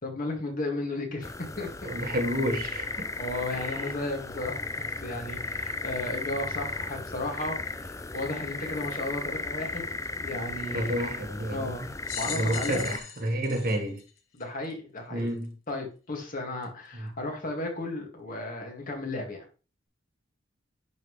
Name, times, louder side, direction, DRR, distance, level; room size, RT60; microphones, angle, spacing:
voice 1, 0.0-1.7 3.2-11.9 12.1-13.0 14.3-15.3 15.7-19.5, left 2 dB, 45° left, 2.0 m, -34 dB
sound 1, 1.2-13.0, left 3 dB, 15° left, 0.4 m, -35 dB
voice 2, 1.8-3.1 3.6-3.8 10.7-11.8 12.3-14.0 15.1-15.5 16.9-17.1, right 1 dB, 50° right, 1.4 m, -30 dB
sound 2, 12.0-14.7 15.4-15.5 16.6-16.7, left 8 dB, 90° left, 1.4 m, -40 dB
10.5 x 4.0 x 3.2 m
head